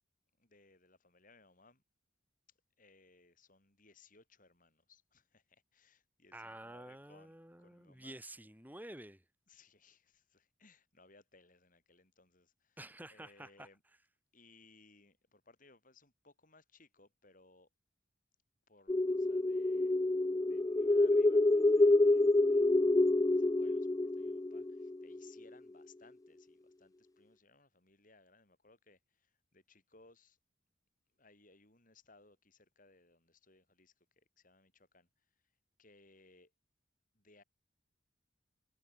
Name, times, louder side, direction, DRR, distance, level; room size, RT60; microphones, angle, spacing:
voice 1, 0.4-1.8 2.8-8.2 9.5-12.8 13.1-13.8 14.3-17.7 18.7-19.9 20.5-22.7 23.0-23.9 24.1-30.4 31.2-35.1 35.8-36.5 37.1-37.4, left 3 dB, 45° left, 7.2 m, -64 dB
voice 2, 6.3-9.2 12.8-13.7, right 1 dB, 10° right, 4.0 m, -50 dB
sound 1, 18.9-25.4, left 2 dB, 20° left, 0.4 m, -28 dB
head